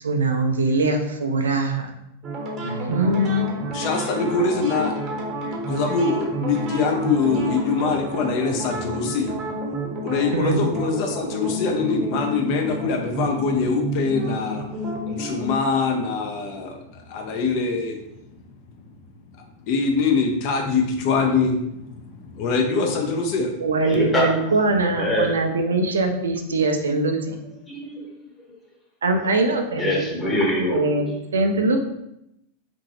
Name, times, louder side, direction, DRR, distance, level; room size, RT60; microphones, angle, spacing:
voice 1, 0.0-1.9 2.6-3.5 10.3-10.7 23.6-27.4 29.0-30.3 30.7-31.8, right 2 dB, 70° right, 5 dB, 0.4 m, -22 dB
sound 1, 2.2-15.5, right 1 dB, 30° right, 0.7 m, -30 dB
voice 2, 3.7-5.0 5.5-9.4 10.0-14.6 15.0-18.0 19.6-23.5, left 4 dB, 45° left, 2 dB, 0.5 m, -23 dB
voice 3, 23.8-24.3 25.0-25.3 27.7-28.1 29.8-30.8, left 1 dB, 10° left, -4 dB, 0.9 m, -23 dB
2.8 x 2.6 x 2.7 m, 0.83 s
figure-of-eight pair, 90°, 0 cm